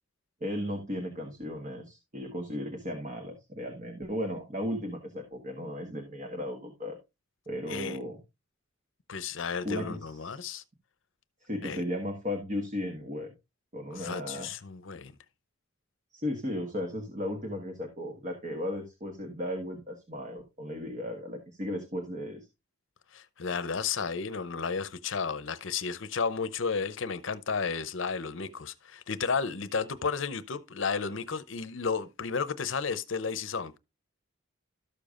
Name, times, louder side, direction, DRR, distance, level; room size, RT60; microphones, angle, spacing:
voice 1, 0.4-7.0 7.5-8.2 9.6-10.4 11.4-13.3 13.7-14.5 16.1-22.4, left 1 dB, 35° right, 1.5 m, -35 dB
voice 2, 9.1-10.6 11.6-11.8 13.9-15.1 23.1-33.8, left 5 dB, 65° left, 0.7 m, -33 dB
13.0 x 6.8 x 2.5 m
head